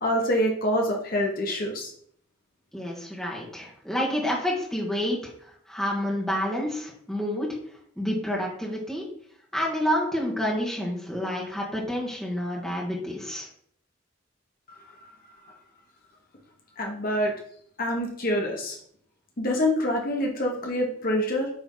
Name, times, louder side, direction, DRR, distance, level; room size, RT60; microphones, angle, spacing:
voice 1, 0.0-1.9 16.8-17.3 17.8-18.8 19.4-21.5, equal, 45° left, 0 dB, 1.2 m, -26 dB
voice 2, 2.7-7.6 8.0-9.1 9.5-13.5, equal, ahead, -4 dB, 1.6 m, -29 dB
8.2 x 3.5 x 3.8 m, 0.63 s
head